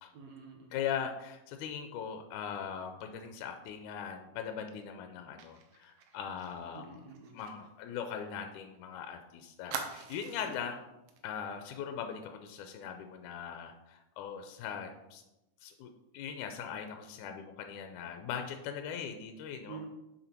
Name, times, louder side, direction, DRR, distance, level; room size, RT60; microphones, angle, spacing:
voice 1, 0.1-0.8 6.7-7.4 10.4-10.7 19.7-19.9, right 6 dB, 70° right, 1 dB, 1.9 m, -49 dB
voice 2, 0.7-7.0 7.3-10.8 11.2-15.2 15.6-19.8, left 7 dB, 80° left, 6 dB, 2.0 m, -40 dB
Fire, 5.4-8.8 9.1-9.2 9.7-10.7 11.1-11.2 11.6-11.8, right 6 dB, 90° right, 1.3 m, -45 dB
6.7 x 5.7 x 4.4 m, 0.95 s
omnidirectional pair, 3.8 m